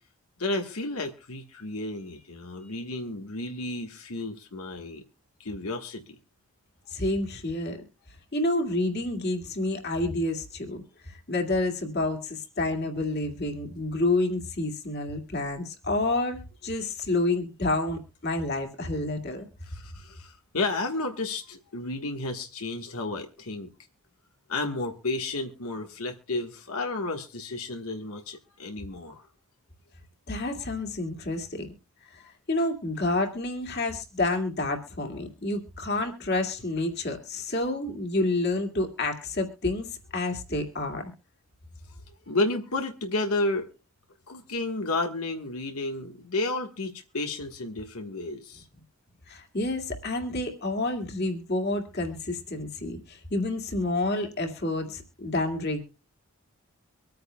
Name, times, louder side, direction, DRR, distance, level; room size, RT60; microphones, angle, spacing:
voice 1, 0.4-5.0 5.4-6.1 19.7-23.7 24.5-29.3 42.3-43.7 44.3-48.7, left 2 dB, 85° left, 3 dB, 1.4 m, -32 dB
voice 2, 6.9-7.8 8.3-10.8 11.1-19.5 30.3-31.7 32.1-32.2 32.5-39.9 40.1-41.0 49.3-55.8, left 2 dB, 45° left, 4 dB, 2.2 m, -29 dB
24.5 x 9.4 x 2.3 m, 0.34 s
head